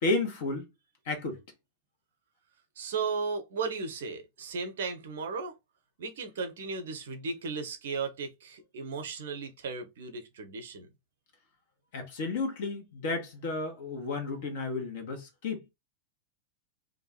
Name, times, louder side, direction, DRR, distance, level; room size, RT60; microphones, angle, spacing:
voice 1, 0.0-0.7 1.0-1.4 11.9-15.6, left 3 dB, 50° left, 1.3 m, -32 dB
voice 2, 2.8-5.6 6.0-10.9, right 4 dB, 60° right, 0.8 m, -35 dB
2.7 x 2.5 x 4.1 m
figure-of-eight pair, 90°, 0 cm